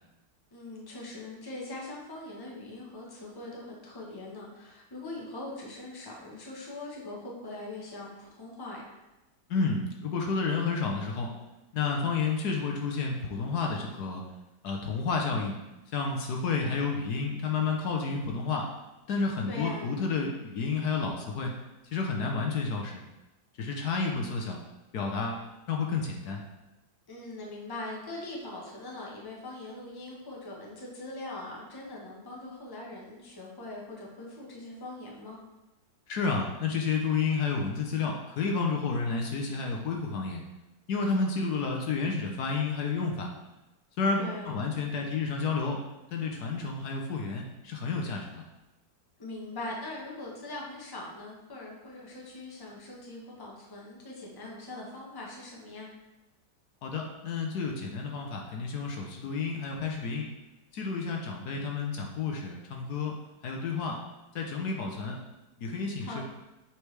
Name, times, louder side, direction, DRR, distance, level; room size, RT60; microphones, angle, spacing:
voice 1, 0.5-8.9 19.5-19.9 27.1-35.4 44.2-44.5 49.2-55.9 66.0-66.2, left 2 dB, 15° left, -3 dB, 0.9 m, -41 dB
voice 2, 9.5-11.3 11.7-14.2 14.6-15.6 15.9-18.7 19.1-21.5 21.9-23.0 23.6-24.6 24.9-26.4 36.1-40.4 40.9-43.3 44.0-45.8 46.1-48.4 56.8-60.3 60.7-63.2 63.4-64.0 64.3-65.2 65.6-66.2, left 4 dB, 70° left, 1 dB, 1.3 m, -30 dB
6.4 x 4.7 x 3.3 m, 1.0 s
omnidirectional pair, 1.8 m